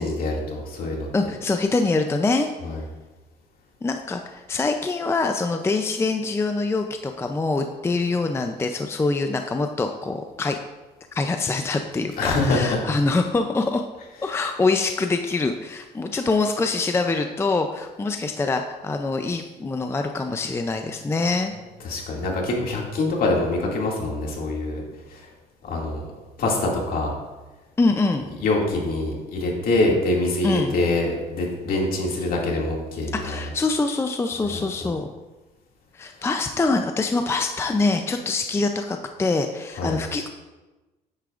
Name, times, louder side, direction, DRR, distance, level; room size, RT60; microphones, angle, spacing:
voice 1, 0.0-1.1 2.6-2.8 12.2-12.8 21.8-24.8 25.1-25.3 25.6-26.0 26.4-27.1 28.4-33.4 34.5-34.6 39.8-40.0, left 2 dB, 60° left, -2 dB, 2.3 m, -24 dB
voice 2, 1.1-2.5 3.8-10.6 11.1-13.8 14.2-21.5 27.8-28.3 30.4-30.7 33.1-35.1 35.9-40.3, left 3 dB, 15° left, 5 dB, 0.5 m, -24 dB
9.5 x 8.3 x 2.5 m, 1.1 s
cardioid pair, 110°, 17 cm